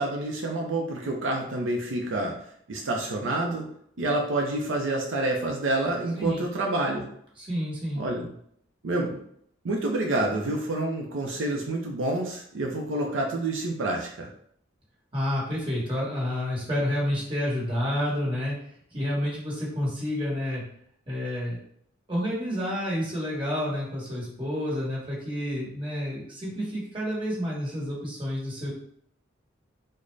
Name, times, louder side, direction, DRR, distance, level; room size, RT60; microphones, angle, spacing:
voice 1, 0.0-2.4 2.7-3.7 4.0-7.1 8.0-8.3 8.8-9.2 9.6-14.3, right 2 dB, 80° right, 1 dB, 0.5 m, -28 dB
voice 2, 7.4-8.0 15.1-18.5 18.9-20.6 21.1-21.6 22.1-28.7, equal, 25° right, -5 dB, 1.1 m, -29 dB
3.8 x 2.1 x 3.2 m, 0.66 s
head